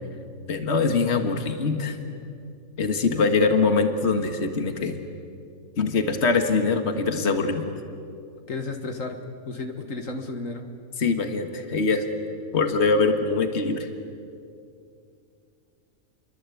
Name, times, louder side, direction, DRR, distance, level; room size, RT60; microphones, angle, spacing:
voice 1, 0.5-2.0 2.8-5.0 5.8-7.7 11.0-12.1 12.5-13.9, left 4 dB, 50° left, 6 dB, 2.0 m, -23 dB
voice 2, 8.5-9.2 9.5-10.6, left 3 dB, 70° left, 5 dB, 2.1 m, -32 dB
28.5 x 23.5 x 8.5 m, 2.5 s
omnidirectional pair, 1.4 m